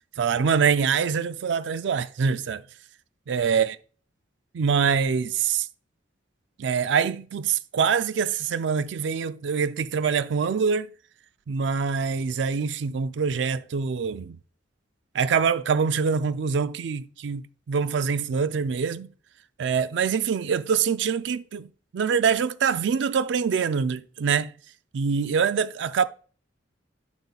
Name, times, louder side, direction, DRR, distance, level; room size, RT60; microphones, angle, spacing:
voice 1, 0.2-2.6 3.3-3.7 4.5-5.7 6.6-10.9 11.5-14.4 15.1-19.1 19.6-21.7 21.9-24.5 24.9-26.1, right 6 dB, 65° right, 0.4 m, -24 dB
9.1 x 5.4 x 2.4 m
head